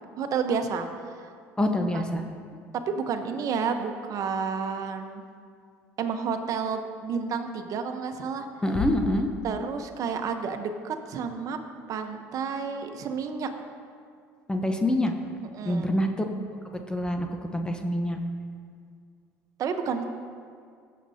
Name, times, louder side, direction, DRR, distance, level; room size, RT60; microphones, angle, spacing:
voice 1, 0.2-1.3 1.9-2.3 2.9-5.2 6.0-8.5 9.4-11.6 11.9-13.5 15.5-15.8 19.6-20.0, right 6 dB, 55° right, 7 dB, 1.0 m, -30 dB
voice 2, 1.6-2.2 8.6-9.3 14.5-15.1 15.6-16.2 16.6-17.3 17.5-18.2, left 1 dB, 10° left, 4 dB, 0.9 m, -26 dB
sound 1, 8.7-10.2, left 7 dB, 50° left, 0.7 m, -35 dB
16.0 x 7.5 x 2.8 m, 2.2 s
supercardioid pair, 75°, 7 cm